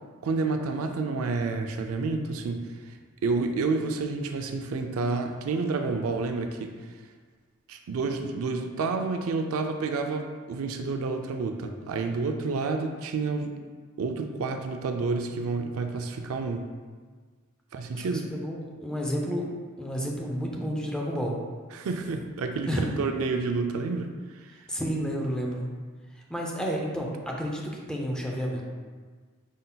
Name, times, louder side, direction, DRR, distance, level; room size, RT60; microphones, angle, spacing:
voice 1, 0.2-3.0 3.2-6.9 7.7-13.5 14.0-16.7 17.7-18.3 21.7-24.7, right 4 dB, 70° right, 5 dB, 0.4 m, -29 dB
voice 2, 17.9-19.5 19.8-21.3 22.7-22.9 24.7-25.7 26.3-28.6, equal, 5° left, -1 dB, 0.5 m, -31 dB
5.2 x 3.9 x 2.2 m, 1.5 s
head